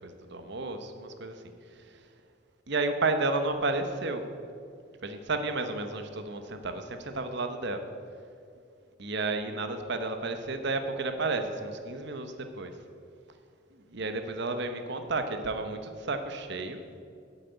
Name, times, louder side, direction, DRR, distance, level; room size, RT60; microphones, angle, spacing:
voice 1, 0.0-2.1 2.7-4.3 5.0-7.9 9.0-12.8 13.7-16.8, right 3 dB, 55° right, 7 dB, 1.0 m, -32 dB
9.2 x 8.4 x 8.0 m, 2.4 s
head